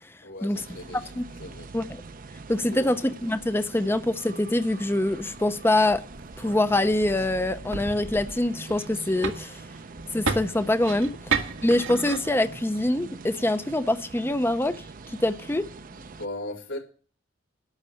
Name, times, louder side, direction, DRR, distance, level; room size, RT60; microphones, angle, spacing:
voice 1, 0.2-1.1 1.4-1.7 2.6-2.9 15.9-16.8, left 1 dB, 90° left, 4.7 m, -38 dB
sound 1, 0.5-16.3, right 3 dB, 45° right, 0.6 m, -43 dB
voice 2, 2.5-6.0 6.4-9.6 10.1-11.1 11.6-14.8 15.1-15.6, left 1 dB, 10° left, 0.6 m, -24 dB
sound 2, 5.1-13.0, right 4 dB, 90° right, 1.8 m, -35 dB
12.0 x 6.6 x 9.8 m
head